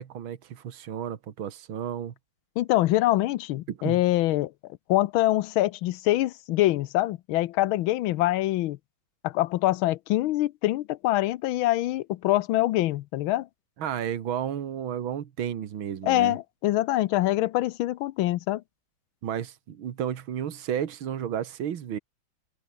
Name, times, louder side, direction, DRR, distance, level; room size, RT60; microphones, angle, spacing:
voice 1, 0.0-2.1 3.7-4.0 13.8-16.4 19.2-22.0, right 9 dB, 80° right, 2.3 m, -32 dB
voice 2, 2.6-4.5 4.9-8.8 9.2-13.5 16.0-18.6, left 16 dB, 85° left, 1.5 m, -24 dB
omnidirectional pair, 2.2 m